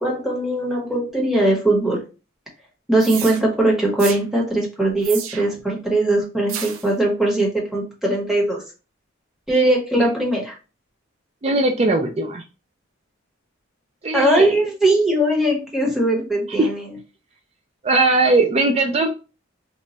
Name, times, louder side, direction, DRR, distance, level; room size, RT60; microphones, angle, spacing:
voice 1, 0.0-2.0 2.9-8.6 9.5-10.5 14.1-16.8, right 1 dB, ahead, -3 dB, 1.0 m, -20 dB
sound 1, 3.0-3.4 4.0-4.2 5.0-5.6 6.5-6.9, right 8 dB, 85° right, 0.5 m, -31 dB
voice 2, 11.4-12.4 14.0-14.6 16.6-16.7 17.8-19.1, right 2 dB, 30° right, 4 dB, 0.4 m, -19 dB
3.0 x 2.2 x 4.0 m, 0.32 s
head